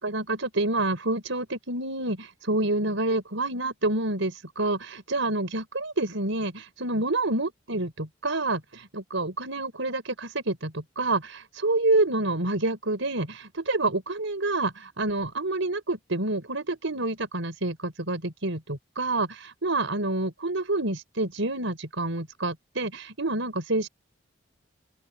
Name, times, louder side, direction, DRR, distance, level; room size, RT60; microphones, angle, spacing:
voice 1, 0.0-23.9, right 2 dB, 85° right, 4.6 m, -28 dB
open air
head